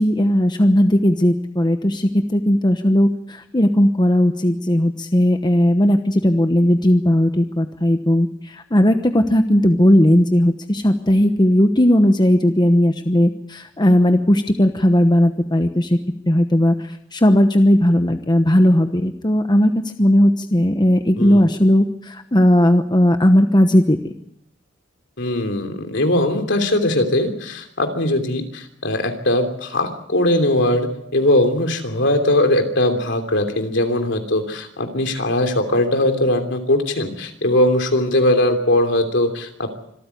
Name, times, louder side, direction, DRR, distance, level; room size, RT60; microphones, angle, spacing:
voice 1, 0.0-16.0 16.3-19.7 20.0-24.1, left 1 dB, 25° left, 7 dB, 1.1 m, -16 dB
voice 2, 21.2-21.5 25.2-39.7, left 1 dB, 65° left, 6 dB, 3.1 m, -20 dB
25.5 x 14.0 x 8.4 m, 0.76 s
head